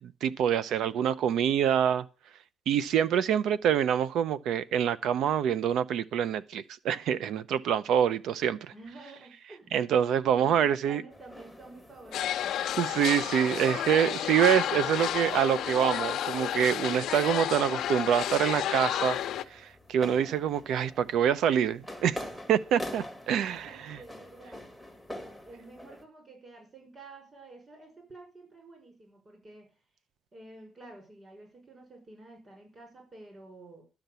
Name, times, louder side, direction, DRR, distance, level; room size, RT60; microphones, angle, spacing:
voice 1, 0.0-2.0 2.7-8.6 9.7-11.0 12.8-19.2 19.5-22.2 22.5-24.0, right 9 dB, 70° right, 0.8 m, -26 dB
voice 2, 8.7-9.8 10.4-12.6 23.4-24.6 25.4-29.8 30.3-33.8, right 2 dB, 25° right, 5.6 m, -50 dB
sound 1, 11.1-26.0, left 1 dB, 5° right, 2.0 m, -47 dB
sound 2, 12.1-19.4, left 11 dB, 65° left, 0.9 m, -31 dB
12.0 x 6.0 x 8.2 m
cardioid pair, 140°, 0 cm